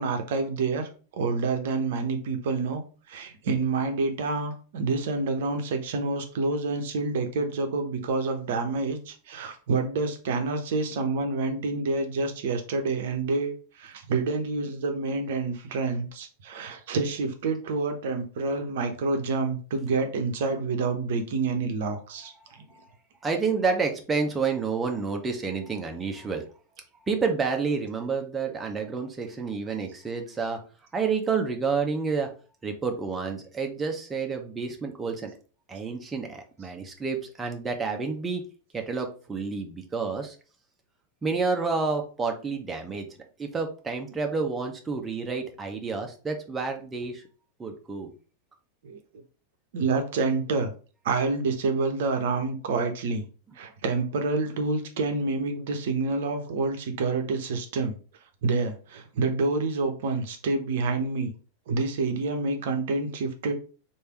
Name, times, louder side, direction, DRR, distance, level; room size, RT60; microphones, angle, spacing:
voice 1, 0.0-22.6 48.8-49.0 49.7-50.7 51.0-53.2 53.6-58.0 58.4-61.3 61.7-63.5, right 3 dB, 55° right, 6 dB, 0.8 m, -28 dB
voice 2, 23.2-26.4 27.1-30.6 30.9-32.3 32.6-35.3 35.7-38.4 38.7-40.3 41.2-43.1 43.4-47.2 47.6-48.1, right 4 dB, 15° right, 2 dB, 0.8 m, -29 dB
3.3 x 2.7 x 4.4 m, 0.38 s
figure-of-eight pair, 90°, 0 cm